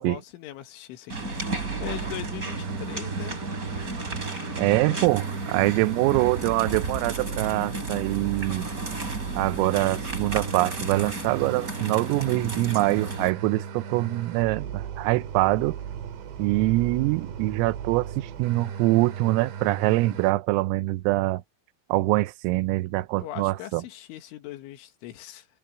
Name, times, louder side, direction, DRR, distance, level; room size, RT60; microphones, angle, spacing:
voice 1, 0.0-3.4 23.2-25.5, left 13 dB, 75° left, 3.8 m, -40 dB
sound 1, 1.1-13.3, right 2 dB, 20° right, 4.3 m, -34 dB
sound 2, 1.1-20.3, right 8 dB, 65° right, 4.3 m, -37 dB
voice 2, 4.6-8.7 9.4-15.8 16.4-21.4 21.9-23.8, right 20 dB, 90° right, 3.4 m, -24 dB
omnidirectional pair, 5.9 m